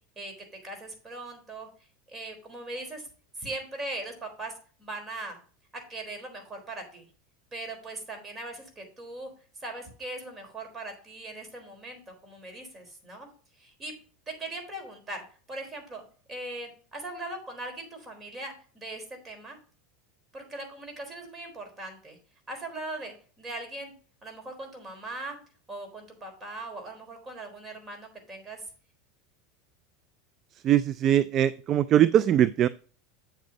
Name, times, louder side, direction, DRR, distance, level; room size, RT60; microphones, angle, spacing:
voice 1, 0.6-1.7 2.1-3.1 3.4-4.5 4.8-5.4 5.7-7.1 7.5-9.3 9.6-13.3 13.6-13.9 14.3-16.0 16.3-19.6 20.3-22.2 22.5-23.9 24.2-25.4 25.7-28.6, right 2 dB, 20° right, 4 dB, 4.1 m, -40 dB
voice 2, 30.6-32.7, right 11 dB, 40° right, 17 dB, 0.3 m, -21 dB
8.6 x 7.7 x 2.8 m, 0.40 s
hypercardioid pair, 90°, 0 cm